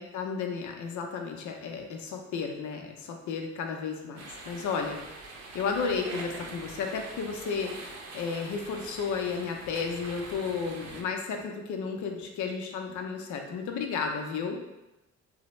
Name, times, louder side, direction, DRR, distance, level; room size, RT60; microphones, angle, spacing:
voice 1, 0.0-5.0 5.5-14.6, left 5 dB, 75° left, 3 dB, 0.5 m, -33 dB
sound 1, 4.2-11.0, right 3 dB, 55° right, 0.6 m, -44 dB
3.2 x 2.0 x 3.0 m, 0.96 s
cardioid pair, 90°, 30 cm